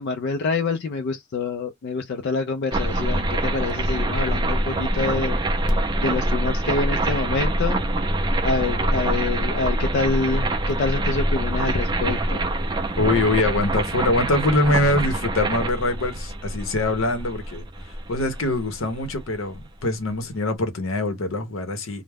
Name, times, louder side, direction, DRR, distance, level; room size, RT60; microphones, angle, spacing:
voice 1, 0.0-5.4 5.7-7.8 8.4-12.5, left 4 dB, 55° left, 0.3 m, -26 dB
sound 1, 2.7-19.6, right 1 dB, 20° right, 0.4 m, -25 dB
voice 2, 13.0-22.0, left 2 dB, 75° left, 0.7 m, -24 dB
2.2 x 2.0 x 3.3 m
head